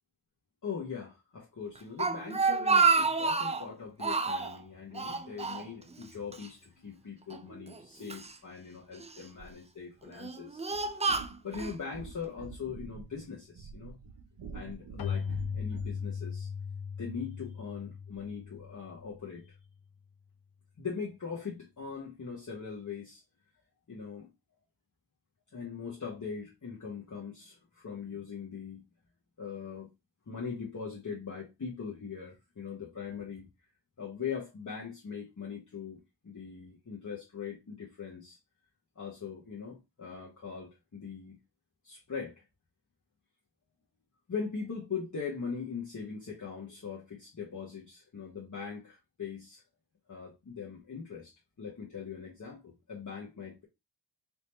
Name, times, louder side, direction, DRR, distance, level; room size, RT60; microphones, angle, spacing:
voice 1, 0.6-10.7 11.4-14.0 14.5-16.5 17.0-19.4 20.8-23.2 23.9-24.3 25.5-28.8 29.4-29.9 30.3-33.5 34.0-38.4 39.0-41.4 41.8-42.3 44.3-49.6 50.1-53.6, left 6 dB, 40° left, 1.1 m, -41 dB
Speech, 1.8-3.7 4.0-4.6 5.0-6.1 6.3-6.5 7.3-8.3 9.0-9.4 10.1-11.8, right 4 dB, 15° right, 0.3 m, -29 dB
sound 1, 10.7-16.1, right 5 dB, 75° right, 0.9 m, -47 dB
Keyboard (musical), 15.0-19.5, left 6 dB, 60° left, 0.5 m, -38 dB
3.5 x 2.8 x 4.4 m
wide cardioid pair, 115°, 44 cm